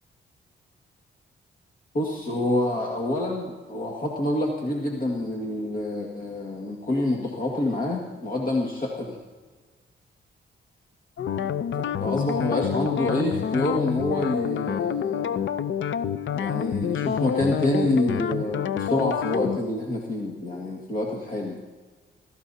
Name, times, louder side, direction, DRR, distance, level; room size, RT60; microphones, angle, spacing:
voice 1, 1.9-9.2 12.0-15.5 16.3-21.6, left 1 dB, 45° left, -1 dB, 2.0 m, -27 dB
sound 1, 11.2-19.6, left 9 dB, 75° left, 0.6 m, -27 dB
27.5 x 14.0 x 2.8 m, 1.4 s
cardioid pair, 100°, 20 cm